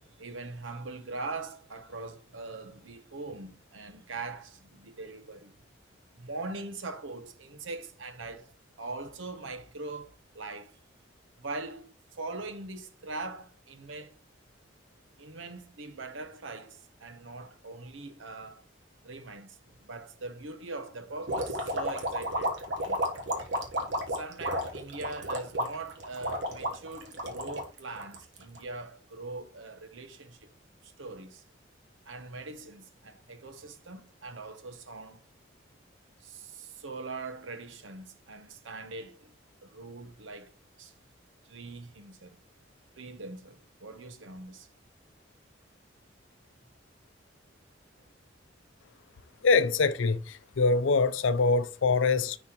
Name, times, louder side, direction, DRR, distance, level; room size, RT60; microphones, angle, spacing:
voice 1, 0.0-5.5 6.2-10.8 11.4-14.2 15.2-18.7 19.0-23.0 24.1-30.5 30.8-31.4 32.1-35.2 36.2-39.3 39.6-40.5 40.8-40.9 41.4-42.4 42.9-44.7, right 3 dB, 80° right, 0.9 m, -42 dB
sound 1, 21.3-28.6, equal, 65° right, 1.2 m, -32 dB
voice 2, 49.4-52.4, left 4 dB, 80° left, 0.6 m, -24 dB
9.6 x 4.2 x 3.0 m
head